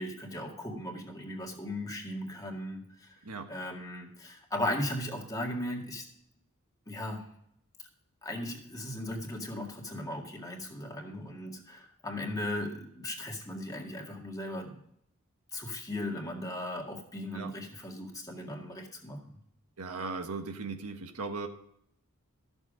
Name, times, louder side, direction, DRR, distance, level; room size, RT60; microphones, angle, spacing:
voice 1, 0.0-3.2 3.5-6.1 6.9-7.2 8.2-14.8 15.5-19.4, left 1 dB, 15° left, 1 dB, 2.0 m, -37 dB
voice 2, 19.8-21.5, right 4 dB, 85° right, 6 dB, 1.3 m, -37 dB
13.5 x 7.1 x 5.0 m, 0.72 s
head